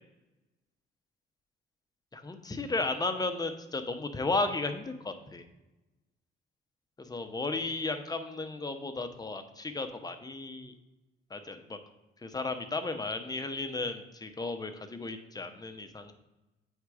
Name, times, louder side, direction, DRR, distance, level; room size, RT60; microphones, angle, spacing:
voice 1, 2.1-5.4 7.0-10.7 11.3-11.8 12.2-16.1, left 3 dB, 20° left, 7 dB, 0.8 m, -34 dB
8.0 x 3.7 x 4.8 m, 1.0 s
cardioid pair, 90°, 20 cm